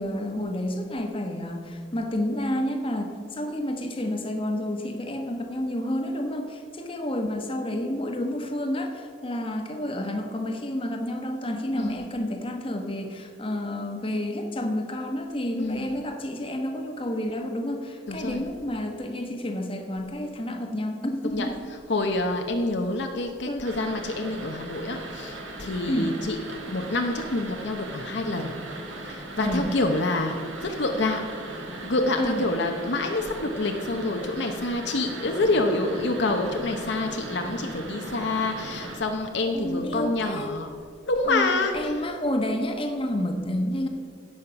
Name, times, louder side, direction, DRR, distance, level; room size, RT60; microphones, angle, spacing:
voice 1, 0.0-21.6 23.4-23.7 25.9-26.2 29.4-29.7 32.2-32.4 39.5-40.5 41.2-43.9, left 1 dB, 25° left, 4 dB, 1.0 m, -30 dB
voice 2, 15.6-15.9 18.1-18.4 21.3-21.5 21.9-26.4 26.6-28.5 29.1-31.2 31.8-40.7 41.1-41.9, left 2 dB, 60° left, 4 dB, 0.7 m, -27 dB
sound 1, 23.6-39.0, right 1 dB, 70° right, 1.7 m, -38 dB
16.5 x 5.7 x 5.7 m, 2.2 s
head